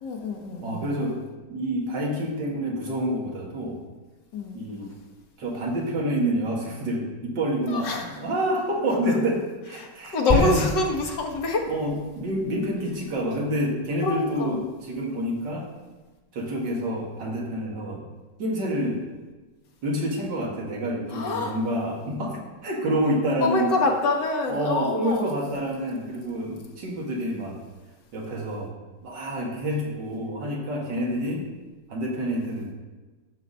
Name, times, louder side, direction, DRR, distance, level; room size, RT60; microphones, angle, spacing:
voice 1, 0.0-0.8 4.3-4.6 7.7-8.0 9.8-11.7 14.0-14.6 21.1-21.5 23.4-25.3, left 3 dB, 75° left, 1 dB, 2.0 m, -26 dB
voice 2, 0.6-1.2 1.5-3.8 4.5-4.9 5.4-10.6 11.7-15.7 16.3-18.0 18.4-19.0 19.8-23.7 24.5-27.6 28.1-28.7 29.0-31.4 31.9-32.7, equal, 75° right, -1 dB, 2.4 m, -28 dB
sound 1, 10.3-13.9 14.5-14.6, left 2 dB, 30° left, 1.2 m, -30 dB
12.0 x 4.1 x 7.3 m, 1.2 s
omnidirectional pair, 1.9 m